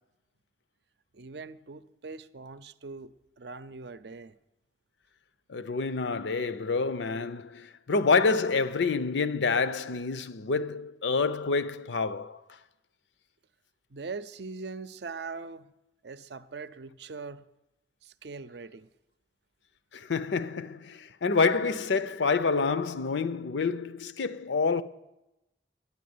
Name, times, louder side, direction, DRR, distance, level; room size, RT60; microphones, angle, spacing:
voice 1, 1.1-4.3 13.9-15.7 16.0-17.5 18.0-18.9, right 4 dB, 65° right, 0.6 m, -41 dB
voice 2, 5.5-12.4 19.9-24.8, left 4 dB, 80° left, 0.6 m, -27 dB
10.5 x 10.0 x 9.5 m
head